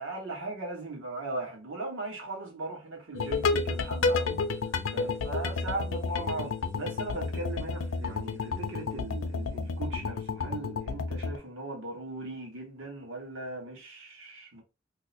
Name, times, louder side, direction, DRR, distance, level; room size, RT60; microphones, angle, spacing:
voice 1, 0.0-4.4 4.9-14.6, right 2 dB, 80° right, 1.3 m, -38 dB
sound 1, 3.1-11.4, left 4 dB, 70° left, 0.4 m, -31 dB
2.8 x 2.1 x 4.1 m
head